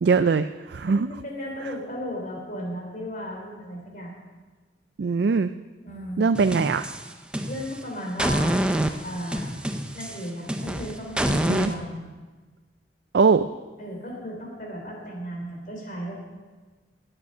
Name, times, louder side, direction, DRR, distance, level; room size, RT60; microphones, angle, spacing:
voice 1, 0.0-1.1 5.0-5.5 6.2-6.9 11.5-11.7 13.1-13.5, right 5 dB, 65° right, 11 dB, 0.4 m, -21 dB
voice 2, 0.9-4.2 5.8-6.3 7.5-8.6 9.0-12.1 13.8-16.2, equal, 45° left, 0 dB, 3.7 m, -35 dB
sound 1, 6.3-7.8 8.2-11.7, right 1 dB, 5° right, 0.6 m, -26 dB
17.0 x 9.1 x 5.5 m, 1.3 s
head